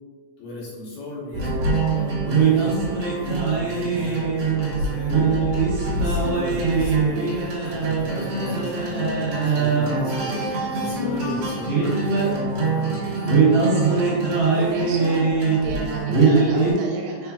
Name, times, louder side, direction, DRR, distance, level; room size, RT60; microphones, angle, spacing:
voice 1, 0.4-5.2 5.9-9.1 9.4-12.3 12.6-13.4, left 1 dB, 75° left, -6 dB, 2.6 m, -36 dB
sound 1, 1.3-16.7, right 4 dB, 65° right, 1.7 m, -22 dB
voice 2, 13.7-15.3 15.6-17.3, right 3 dB, 85° right, 0 dB, 2.0 m, -34 dB
4.4 x 4.3 x 2.3 m, 1.5 s
omnidirectional pair, 3.5 m